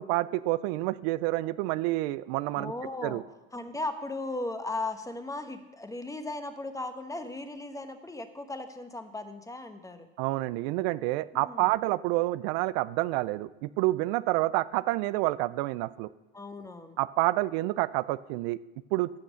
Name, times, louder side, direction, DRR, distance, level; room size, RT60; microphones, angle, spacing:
voice 1, 0.0-2.7 3.0-3.2 10.2-16.1 17.0-18.6 18.9-19.1, right 18 dB, 75° right, 16 dB, 0.5 m, -28 dB
voice 2, 2.5-3.2 3.5-10.1 11.3-11.7 16.3-17.0, left 2 dB, 10° left, 8 dB, 1.2 m, -37 dB
14.5 x 6.0 x 6.4 m, 1.1 s
supercardioid pair, 95°, 31 cm